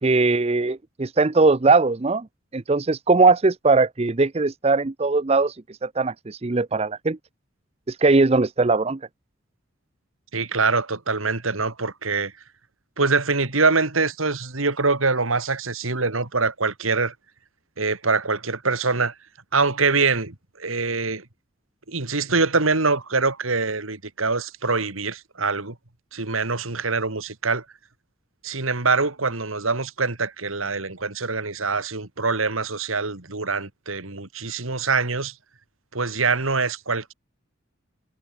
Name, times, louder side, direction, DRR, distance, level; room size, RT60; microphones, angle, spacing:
voice 1, 0.0-2.3 2.5-7.2 7.9-9.0, right 3 dB, 30° right, 0.6 m, -20 dB
voice 2, 10.3-12.3 13.0-17.1 17.8-19.1 19.5-21.2 21.9-25.7 26.1-27.6 28.4-35.3 35.9-37.1, right 4 dB, 85° right, 2.7 m, -24 dB
head